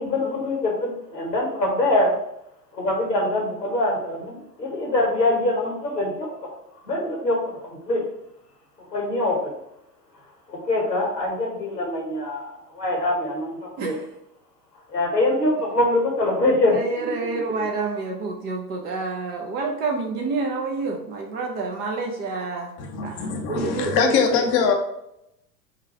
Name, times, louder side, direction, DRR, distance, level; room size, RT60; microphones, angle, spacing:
voice 1, 0.0-2.1 2.7-6.5 6.9-8.1 8.9-9.5 10.5-13.9 14.9-16.8 17.2-17.3, left 2 dB, 85° left, 0 dB, 1.7 m, -24 dB
voice 2, 16.7-22.7 23.0-24.3, right 3 dB, 20° right, 1 dB, 0.4 m, -28 dB
voice 3, 22.8-24.7, left 6 dB, 35° left, 4 dB, 0.6 m, -22 dB
4.9 x 2.3 x 4.3 m, 0.82 s
figure-of-eight pair, 90°, 48 cm